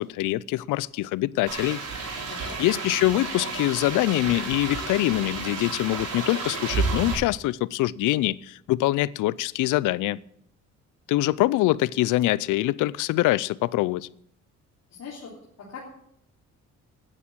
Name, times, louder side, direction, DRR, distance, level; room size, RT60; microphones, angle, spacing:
voice 1, 0.0-1.8 2.6-10.2 11.1-14.1, left 17 dB, 90° left, 0.5 m, -24 dB
sound 1, 1.5-7.1, right 4 dB, 80° right, 5.1 m, -31 dB
voice 2, 15.0-15.3 15.6-15.8, left 6 dB, 60° left, 3.6 m, -40 dB
10.5 x 9.8 x 8.7 m
cardioid pair, 90°, 30 cm